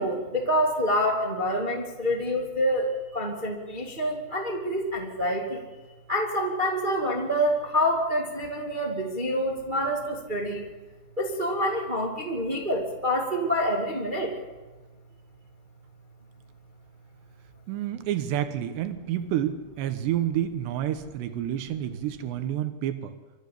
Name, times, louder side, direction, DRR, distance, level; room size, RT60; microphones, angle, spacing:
voice 1, 0.0-5.6 6.1-10.7 11.2-14.3, equal, 20° right, 1 dB, 1.4 m, -27 dB
voice 2, 17.7-23.1, right 11 dB, 90° right, 9 dB, 3.4 m, -29 dB
25.5 x 14.0 x 8.5 m, 1.3 s
omnidirectional pair, 4.8 m